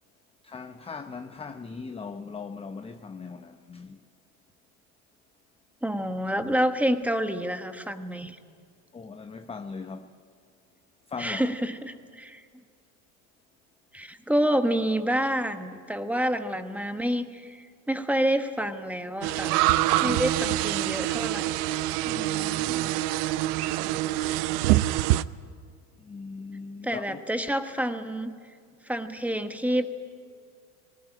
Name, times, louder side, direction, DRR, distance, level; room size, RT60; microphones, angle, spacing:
voice 1, 0.4-4.1 8.9-10.1 11.1-11.5 20.0-20.2 22.0-23.0 26.0-27.2, left 5 dB, 15° left, 0.7 m, -39 dB
voice 2, 5.8-8.4 11.2-12.4 13.9-19.6 20.0-21.6 26.8-28.3 28.8-29.8, equal, 5° right, 1.2 m, -28 dB
sound 1, 19.2-25.2, right 16 dB, 85° right, 0.7 m, -25 dB
19.0 x 19.0 x 9.9 m
supercardioid pair, 110°, 45 cm